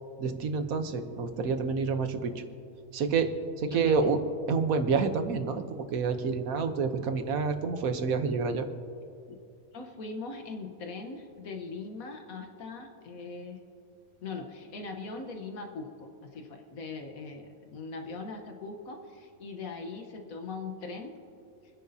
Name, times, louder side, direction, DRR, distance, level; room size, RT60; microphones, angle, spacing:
voice 1, 0.2-2.3 2.9-4.2 4.5-8.7, right 5 dB, 80° right, 7 dB, 1.4 m, -28 dB
voice 2, 3.7-4.1 9.7-13.6 14.2-21.2, left 4 dB, 85° left, 4 dB, 1.6 m, -40 dB
28.0 x 10.5 x 2.8 m, 2.6 s
omnidirectional pair, 1.5 m